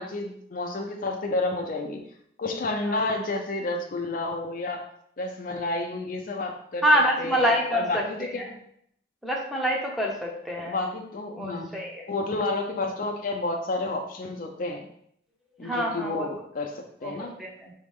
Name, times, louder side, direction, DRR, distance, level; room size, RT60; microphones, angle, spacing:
voice 1, 0.0-2.0 2.4-4.9 5.2-6.9 7.2-8.5 10.6-11.7 12.1-14.9 15.6-17.4, left 2 dB, 45° left, 3 dB, 0.5 m, -30 dB
voice 2, 6.8-8.0 9.2-10.8 11.3-12.0 15.6-16.3 17.0-17.7, equal, ahead, -2 dB, 0.7 m, -26 dB
4.8 x 3.1 x 3.5 m, 0.69 s
head